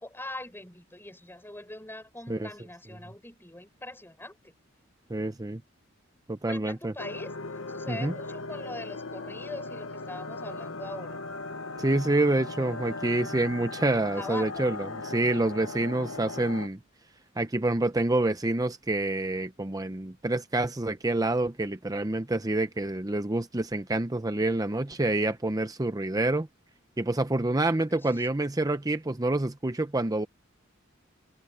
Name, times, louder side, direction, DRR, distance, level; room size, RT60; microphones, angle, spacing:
voice 1, 0.0-4.5 5.2-5.3 6.5-7.3 7.7-11.2 14.1-14.6 27.9-28.2, left 1 dB, 10° left, 5.8 m, -42 dB
voice 2, 5.1-5.6 6.3-6.9 7.9-8.1 11.8-16.8 17.4-26.5 27.0-30.3, right 2 dB, 20° right, 0.7 m, -27 dB
sound 1, 7.0-16.7, left 3 dB, 80° left, 1.2 m, -38 dB
head